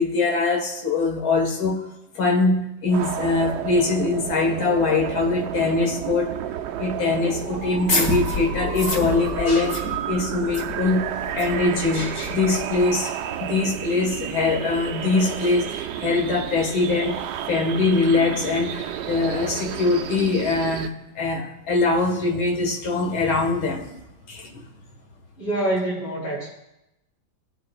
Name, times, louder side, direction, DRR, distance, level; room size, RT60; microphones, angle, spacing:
voice 1, 0.0-1.9 2.1-6.4 6.8-11.1 11.3-24.0 24.3-24.6, left 3 dB, 85° left, 1 dB, 2.5 m, -23 dB
sound 1, 2.9-20.9, right 10 dB, 70° right, 1.1 m, -31 dB
sound 2, 7.5-12.9, left 2 dB, 40° left, 2.3 m, -29 dB
voice 2, 25.4-26.5, right 1 dB, 55° left, -6 dB, 4.9 m, -25 dB
19.5 x 8.5 x 2.4 m, 0.87 s
omnidirectional pair, 2.2 m